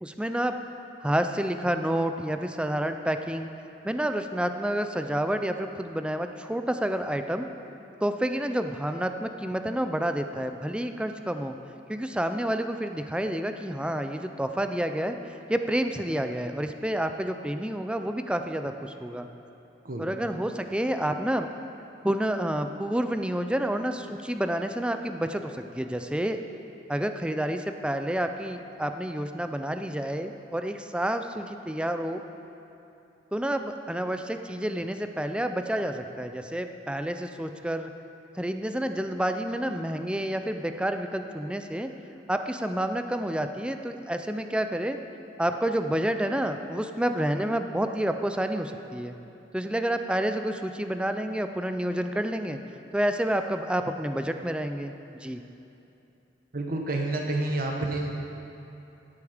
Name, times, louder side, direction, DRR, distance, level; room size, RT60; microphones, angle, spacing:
voice 1, 0.0-0.6 1.0-3.5 3.8-7.5 8.0-11.5 11.9-19.3 20.0-21.5 22.0-26.4 26.9-32.2 33.3-37.9 38.4-41.9 42.3-45.0 45.4-49.1 49.5-52.6 52.9-54.9 55.2-55.4, right 1 dB, 5° right, 7 dB, 0.5 m, -29 dB
voice 2, 56.5-58.1, right 2 dB, 50° right, 1 dB, 1.1 m, -29 dB
16.5 x 8.4 x 5.0 m, 2.9 s
head